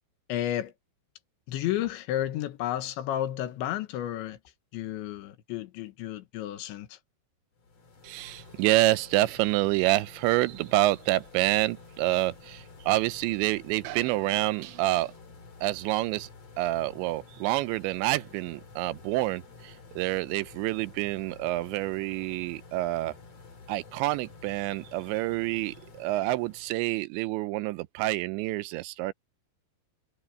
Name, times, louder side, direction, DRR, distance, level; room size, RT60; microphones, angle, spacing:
voice 1, 0.3-0.7 1.5-4.4 4.7-7.0, left 12 dB, 90° left, 3.8 m, -32 dB
sound 1, 7.6-27.0, left 4 dB, 35° left, 4.1 m, -50 dB
voice 2, 8.0-15.1 15.6-16.3 16.6-23.2 23.7-29.1, right 17 dB, 85° right, 2.9 m, -27 dB
omnidirectional pair, 5.1 m